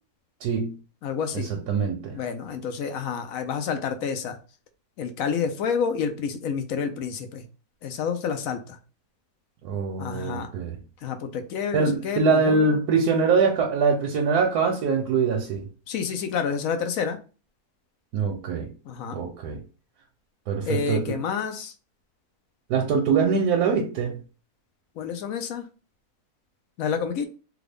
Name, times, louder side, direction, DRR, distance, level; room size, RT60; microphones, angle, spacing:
voice 1, 0.4-0.8 1.3-2.1 9.6-10.8 11.7-15.7 18.1-18.7 19.1-19.6 20.5-21.2 22.7-24.2, right 5 dB, 85° right, 1.2 m, -23 dB
voice 2, 1.0-1.5 2.1-4.4 5.0-7.4 7.8-8.8 10.0-10.5 11.0-12.8 15.9-17.2 18.9-19.2 20.7-21.7 25.0-25.7 26.8-27.3, left 6 dB, 70° left, 0.9 m, -29 dB
3.5 x 2.3 x 3.4 m
omnidirectional pair, 1.6 m